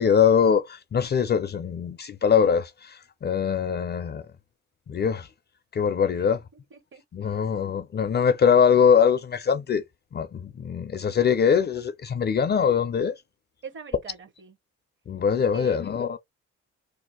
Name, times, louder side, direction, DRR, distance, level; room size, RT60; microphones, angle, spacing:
voice 1, 0.0-4.2 4.9-5.3 5.7-6.4 7.1-9.8 10.1-13.1 15.1-16.2, left 7 dB, 35° left, 0.4 m, -22 dB
voice 2, 6.5-7.6 13.6-14.6 15.5-15.8, right 6 dB, 40° right, 0.9 m, -44 dB
2.6 x 2.1 x 3.7 m
cardioid pair, 90°, 30 cm